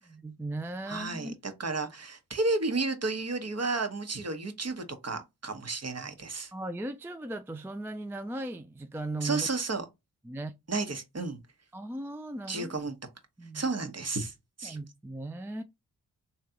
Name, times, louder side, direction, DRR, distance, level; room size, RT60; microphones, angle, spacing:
voice 1, 0.1-1.3 6.5-9.5 10.2-10.5 11.7-12.7 13.4-13.6 14.6-15.6, right 1 dB, 5° right, 0.4 m, -37 dB
voice 2, 0.9-6.5 9.2-9.8 10.7-11.4 12.5-12.9 13.5-14.3 14.6-14.8, right 3 dB, 40° right, 1.2 m, -32 dB
3.2 x 2.9 x 3.7 m
supercardioid pair, 40°, 39 cm